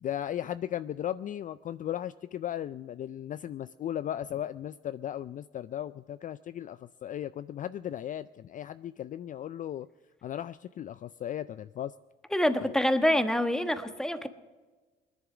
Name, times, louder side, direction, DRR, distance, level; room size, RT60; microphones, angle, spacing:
voice 1, 0.0-9.9 10.2-11.9 12.6-12.7, left 11 dB, 40° left, 15 dB, 0.4 m, -36 dB
voice 2, 12.3-14.3, left 1 dB, 5° left, 9 dB, 1.3 m, -26 dB
19.5 x 10.5 x 6.0 m, 1.3 s
supercardioid pair, 80°, 20 cm